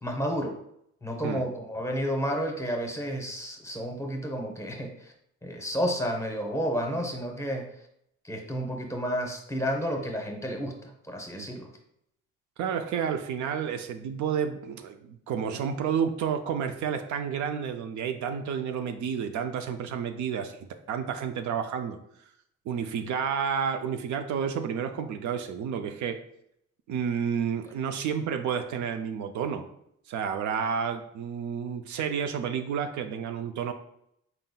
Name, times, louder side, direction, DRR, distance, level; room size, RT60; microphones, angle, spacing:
voice 1, 0.0-0.5 1.0-5.1 5.4-7.7 8.2-11.7, equal, 10° left, 2 dB, 0.8 m, -31 dB
voice 2, 12.6-22.0 22.7-26.2 26.9-29.7 30.1-33.7, right 7 dB, 75° right, 7 dB, 0.5 m, -30 dB
4.3 x 3.8 x 2.2 m, 0.74 s
cardioid pair, 90°, 30 cm